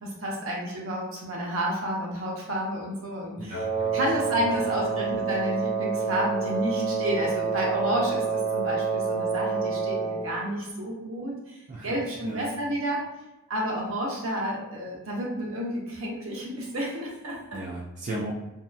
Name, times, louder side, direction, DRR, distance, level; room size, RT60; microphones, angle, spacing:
voice 1, 0.0-8.2 8.5-13.0 13.5-17.6, equal, 75° right, -3 dB, 0.8 m, -30 dB
Wind instrument woodwind instrument, 3.5-10.3, right 5 dB, 90° left, 0.6 m, -28 dB
voice 2, 3.5-3.9 4.2-4.3 11.7-12.5 17.5-18.3, right 1 dB, 40° right, -4 dB, 0.4 m, -36 dB
2.7 x 2.4 x 2.2 m, 0.98 s
head